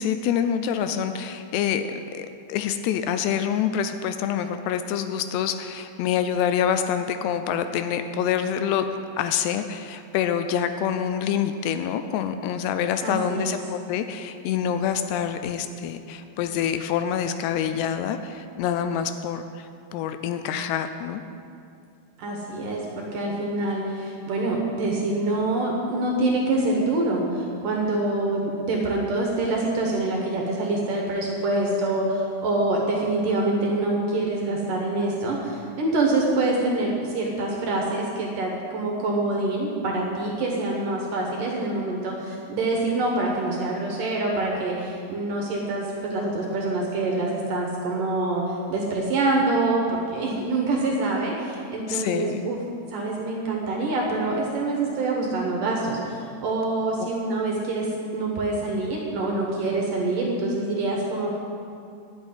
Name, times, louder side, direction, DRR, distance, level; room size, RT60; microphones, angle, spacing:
voice 1, 0.0-8.9 9.2-21.2 51.9-52.4 57.0-57.1, left 8 dB, 80° left, 9 dB, 2.6 m, -26 dB
voice 2, 13.0-13.6 22.2-48.4 48.7-52.6 52.9-57.9 58.1-61.4, right 2 dB, 65° right, -1 dB, 2.4 m, -25 dB
12.0 x 6.3 x 9.6 m, 2.5 s
omnidirectional pair, 5.0 m